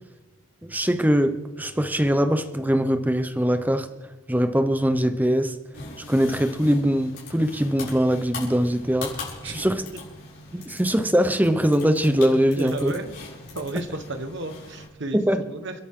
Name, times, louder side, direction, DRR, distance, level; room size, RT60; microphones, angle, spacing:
voice 1, 0.6-3.9 4.3-5.6 6.1-9.9 10.5-12.9 15.1-15.4, equal, 10° right, 9 dB, 0.8 m, -22 dB
sound 1, 5.7-14.8, left 3 dB, 50° left, 6.6 m, -41 dB
voice 2, 12.6-13.1 13.5-15.2 15.5-15.7, right 2 dB, 55° right, 8 dB, 1.4 m, -32 dB
30.0 x 11.0 x 3.8 m, 1.2 s
head